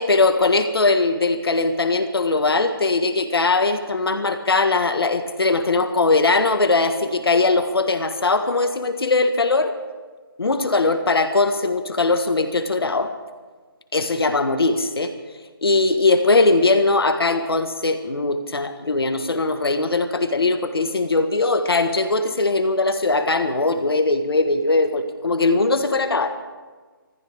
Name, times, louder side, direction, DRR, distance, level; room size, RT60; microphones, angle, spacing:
voice 1, 0.0-9.7 10.4-13.1 13.9-15.1 15.6-26.3, left 3 dB, 85° left, 8 dB, 1.6 m, -20 dB
26.0 x 14.0 x 3.6 m, 1.4 s
hypercardioid pair, 165°, 12 cm